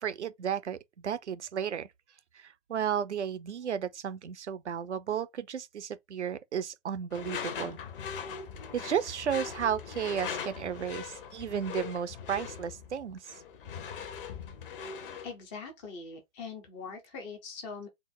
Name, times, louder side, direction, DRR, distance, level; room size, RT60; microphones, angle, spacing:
voice 1, 0.0-1.9 2.3-7.8 8.7-13.2, right 8 dB, 70° right, 0.7 m, -33 dB
Door / Screech, 7.1-15.3, left 7 dB, 45° left, 0.9 m, -40 dB
voice 2, 15.2-17.9, left 5 dB, 10° left, 0.4 m, -42 dB
4.4 x 2.0 x 4.2 m
figure-of-eight pair, 125°, 36 cm